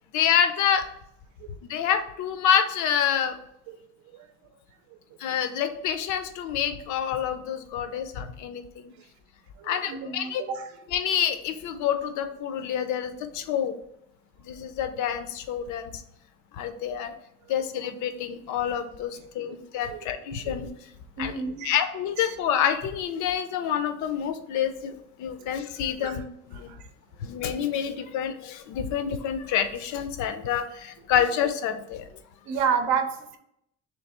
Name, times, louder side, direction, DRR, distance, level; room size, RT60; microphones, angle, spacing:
voice 1, 0.1-0.8 1.7-3.4 5.2-8.9 9.6-10.4 10.9-13.8 14.4-16.0 16.5-17.1 17.5-20.7 21.2-21.3 21.6-24.9 25.2-26.2 26.5-26.7 27.2-32.1, left 8 dB, 75° left, 10 dB, 0.5 m, -27 dB
voice 2, 9.6-10.8 16.7-16.8 17.4-17.5 19.4-19.6 19.9-20.0 20.6-20.7 21.2-21.8 22.2-22.4 25.4-25.5 26.0-26.2 26.5-26.9 32.4-33.4, right 6 dB, 65° right, 7 dB, 0.6 m, -31 dB
3.2 x 3.1 x 4.2 m, 0.76 s
cardioid pair, 175°, 31 cm